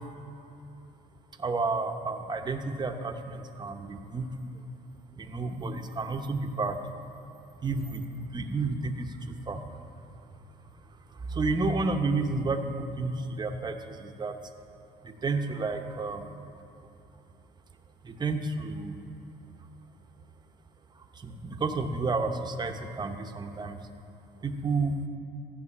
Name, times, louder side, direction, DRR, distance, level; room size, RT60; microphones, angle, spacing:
voice 1, 1.4-4.3 5.2-6.8 7.6-8.0 8.3-9.1 9.5-9.6 11.3-14.3 15.0-16.3 18.0-19.0 21.2-23.8 24.4-24.9, right 3 dB, 25° right, 5 dB, 0.9 m, -31 dB
14.0 x 6.4 x 8.5 m, 2.8 s
cardioid pair, 110°, 17 cm